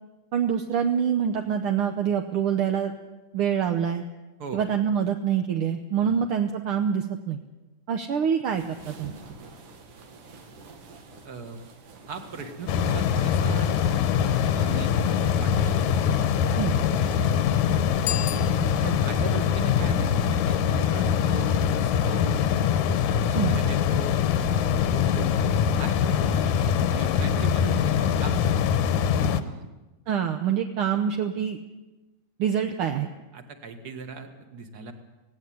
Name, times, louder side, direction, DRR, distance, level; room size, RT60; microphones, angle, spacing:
voice 1, 0.3-2.9 3.3-4.0 4.5-7.4 7.9-9.1 16.6-16.8 23.3-23.5 30.1-31.6 32.4-33.1, right 8 dB, 65° right, 5 dB, 1.4 m, -25 dB
sound 1, 8.4-19.6, right 3 dB, 85° right, 3.6 m, -45 dB
voice 2, 11.2-11.6 12.1-14.9 15.4-15.9 17.0-17.6 18.8-22.4 23.1-24.3 24.8-28.7 29.2-29.7 33.3-34.9, right 4 dB, 35° right, 7 dB, 1.9 m, -38 dB
sound 2, 12.7-29.4, left 8 dB, 85° left, 2.4 m, -23 dB
Bicycle bell, 18.0-19.2, left 11 dB, 65° left, 1.8 m, -34 dB
17.5 x 17.5 x 9.4 m, 1.1 s
omnidirectional pair, 3.4 m